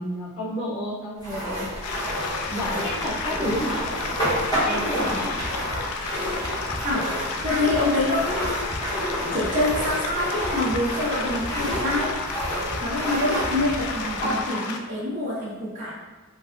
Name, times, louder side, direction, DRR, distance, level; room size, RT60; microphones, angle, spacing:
voice 1, 0.0-1.6 2.5-3.9 4.6-5.3, equal, 55° left, -8 dB, 1.0 m, -30 dB
sound 1, 1.2-14.4, equal, 20° left, 1.0 m, -29 dB
sound 2, 1.8-14.8, left 4 dB, 85° left, 0.3 m, -32 dB
sound 3, 5.4-5.8 6.4-6.8 7.4-7.8 8.4-8.8 9.4-9.8 10.4-10.8 11.4-11.8 12.4-12.8 13.4-13.8, left 1 dB, ahead, 0.3 m, -36 dB
voice 2, 7.4-8.7 9.3-12.2 12.8-15.9, left 1 dB, 40° right, -12 dB, 0.7 m, -26 dB
3.3 x 2.3 x 2.2 m, 1.1 s
head